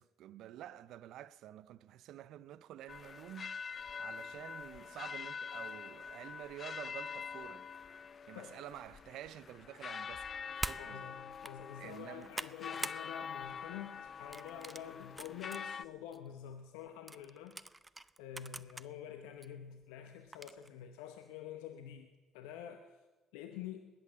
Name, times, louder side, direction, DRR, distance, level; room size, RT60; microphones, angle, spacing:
voice 1, 0.0-3.6 4.0-7.7 8.3-10.3 10.6-11.1 11.8-12.3, right 12 dB, 70° right, 0.5 m, -49 dB
sound 1, 2.9-15.8, left 6 dB, 45° left, 0.5 m, -45 dB
sound 2, 10.6-10.8 11.3-11.5 12.0-13.0 13.4-13.7 14.3-15.6 16.1-16.2 17.1-18.9 19.4-19.5 20.3-20.7, right 2 dB, 15° right, 0.6 m, -44 dB
voice 2, 10.8-17.6 18.2-22.9 23.3-23.8, left 10 dB, 85° left, 0.8 m, -47 dB
21.0 x 8.7 x 7.4 m
hypercardioid pair, 60°, 0 cm